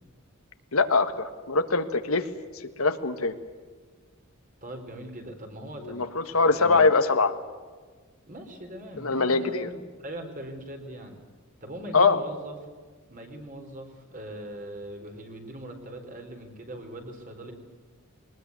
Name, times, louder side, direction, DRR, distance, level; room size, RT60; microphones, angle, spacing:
voice 1, 0.7-2.2 2.8-3.3 5.9-7.3 9.0-9.7 11.9-12.2, left 3 dB, 75° left, 9 dB, 1.6 m, -23 dB
voice 2, 4.6-6.9 8.3-11.2 11.6-12.6 13.1-17.5, right 1 dB, 40° right, 4 dB, 4.1 m, -41 dB
22.0 x 20.0 x 9.6 m, 1.5 s
head